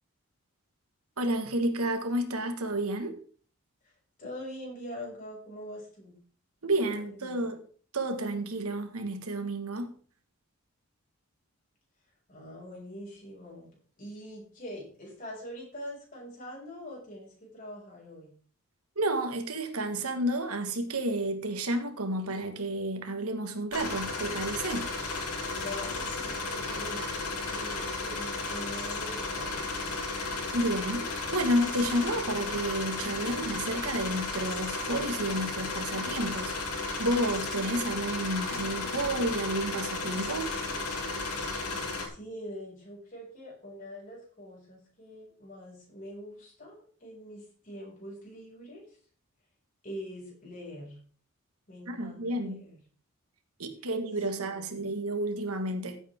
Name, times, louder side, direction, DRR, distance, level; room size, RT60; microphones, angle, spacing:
voice 1, 1.2-3.2 6.6-7.6 7.9-9.9 19.0-24.9 30.5-40.5 51.9-52.6 53.6-56.0, right 1 dB, 85° right, 1.9 m, -31 dB
voice 2, 4.2-6.1 6.8-7.5 12.3-13.7 14.0-18.3 25.6-30.1 42.1-48.8 49.8-51.0 51.7-52.8 54.3-54.9, equal, 35° left, 6.4 m, -44 dB
sound 1, 23.7-42.1, left 3 dB, 85° left, 3.7 m, -34 dB
15.0 x 8.3 x 3.7 m
head